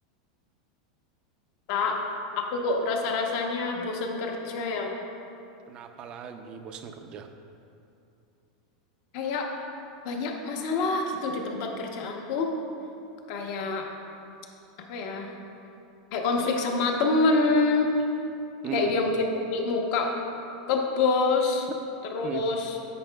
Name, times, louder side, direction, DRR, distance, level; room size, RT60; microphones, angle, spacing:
voice 1, 1.7-2.0 2.4-5.0 9.1-9.5 10.0-12.5 13.3-13.9 14.9-15.3 16.1-17.9 18.7-20.1 20.7-21.7 22.1-22.7, left 3 dB, 45° left, 2 dB, 0.9 m, -26 dB
voice 2, 5.7-7.3 18.6-19.0 22.2-22.5, right 7 dB, 25° right, 6 dB, 0.4 m, -37 dB
10.5 x 8.4 x 2.3 m, 2.7 s
supercardioid pair, 165°, 4 cm